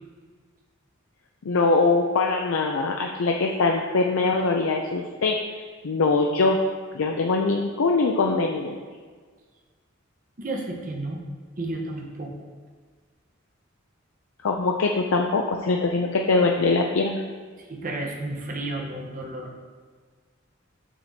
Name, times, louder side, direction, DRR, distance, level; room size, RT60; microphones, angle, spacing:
voice 1, 1.4-5.4 5.8-6.6 6.9-8.8 14.4-17.2, left 3 dB, 75° left, 1 dB, 0.5 m, -22 dB
voice 2, 10.4-11.2 11.6-12.3 17.6-19.5, right 2 dB, 45° right, 1 dB, 1.0 m, -32 dB
7.4 x 6.7 x 2.8 m, 1.5 s
head